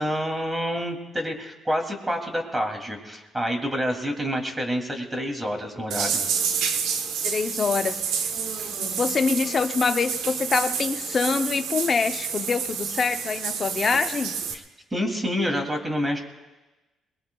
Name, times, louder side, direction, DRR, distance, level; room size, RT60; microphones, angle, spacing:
voice 1, 0.0-6.2 14.5-14.6 14.9-16.2, equal, 15° right, 2.7 m, -28 dB
sound 1, 5.9-14.5, right 6 dB, 90° right, 1.0 m, -29 dB
voice 2, 7.2-8.0 8.8-14.4, left 5 dB, 40° left, 0.7 m, -25 dB
Human voice, 8.3-10.0, right 3 dB, 65° right, 5.0 m, -43 dB
29.0 x 21.0 x 2.3 m
cardioid pair, 100°, 0 cm